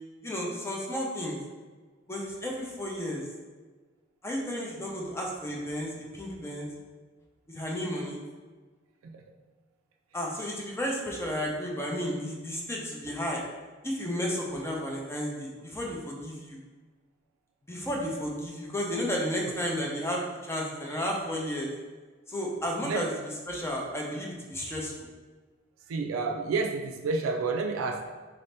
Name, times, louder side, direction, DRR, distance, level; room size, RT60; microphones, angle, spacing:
voice 1, 0.2-1.4 2.1-3.2 4.2-6.7 7.5-8.2 10.1-13.4 13.8-16.6 17.6-21.7 22.3-25.1, equal, 15° left, -2 dB, 0.6 m, -33 dB
voice 2, 25.9-28.1, right 4 dB, 85° right, 4 dB, 0.3 m, -30 dB
4.0 x 2.7 x 3.3 m, 1.4 s
head